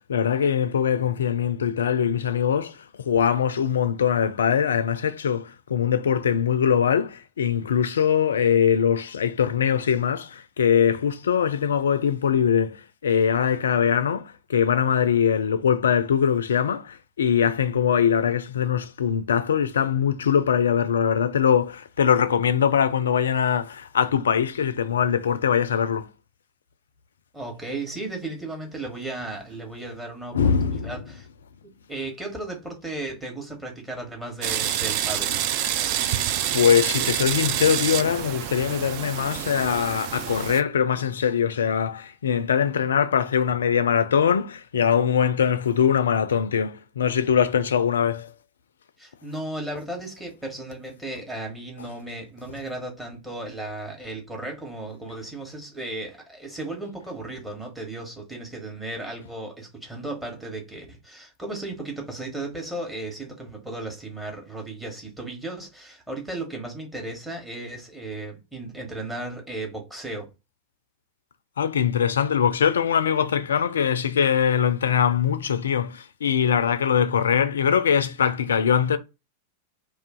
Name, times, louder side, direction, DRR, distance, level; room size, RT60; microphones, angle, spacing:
voice 1, 0.0-26.1 30.3-30.9 36.5-48.3 71.6-79.0, left 8 dB, 65° left, 0.3 m, -22 dB
voice 2, 27.3-31.3 31.9-35.4 49.0-70.3, right 2 dB, 5° right, 1.0 m, -35 dB
sound 1, 34.4-40.6, right 11 dB, 45° right, 0.3 m, -27 dB
2.5 x 2.4 x 3.5 m
figure-of-eight pair, 90°, 0 cm